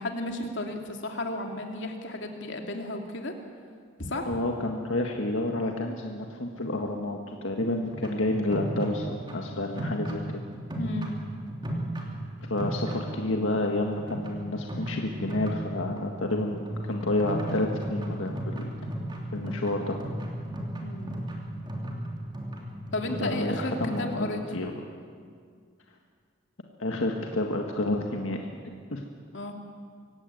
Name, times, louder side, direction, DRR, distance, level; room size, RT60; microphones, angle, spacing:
voice 1, 0.0-3.3 4.0-4.4 10.8-11.2 20.8-21.1 22.9-24.6 29.3-29.5, left 1 dB, 65° left, 3 dB, 2.8 m, -33 dB
voice 2, 4.3-10.2 12.5-18.7 19.3-20.0 23.2-24.7 26.8-28.4 28.6-29.0, left 2 dB, 85° left, 2 dB, 1.7 m, -29 dB
sound 1, 7.8-24.4, right 1 dB, 25° right, 3.1 m, -35 dB
24.5 x 16.0 x 9.4 m, 2.1 s
head